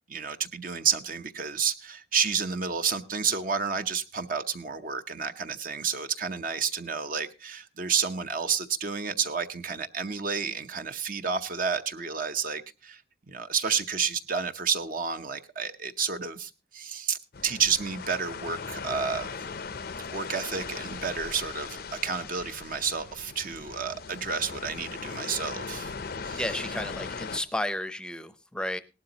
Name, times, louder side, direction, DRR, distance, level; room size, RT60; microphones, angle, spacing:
voice 1, 0.1-13.0 13.3-17.2 17.4-19.3 20.1-25.9 26.2-26.4, right 6 dB, 45° right, 8 dB, 0.8 m, -30 dB
sound 1, 17.3-27.4, left 5 dB, 50° left, 0.6 m, -39 dB
voice 2, 26.3-28.8, left 1 dB, 5° left, 12 dB, 0.7 m, -32 dB
18.5 x 12.0 x 2.9 m, 0.28 s
head